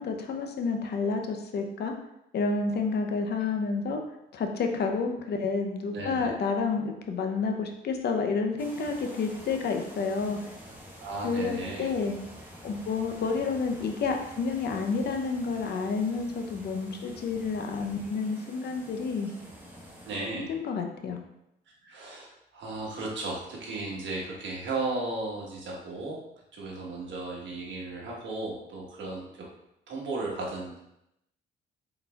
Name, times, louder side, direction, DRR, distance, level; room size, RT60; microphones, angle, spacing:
voice 1, 0.0-1.9 2.3-4.0 4.3-10.4 11.2-12.2 12.6-19.3 20.3-21.2, left 4 dB, 55° left, 4 dB, 0.6 m, -30 dB
voice 2, 5.9-6.4 11.0-11.9 20.0-20.5 21.8-26.2 26.5-29.3 29.9-30.8, right 2 dB, 65° right, -3 dB, 1.3 m, -35 dB
sound 1, 8.6-20.2, equal, 10° right, 0.9 m, -48 dB
3.9 x 3.9 x 2.3 m, 0.83 s
cardioid pair, 90°, 20 cm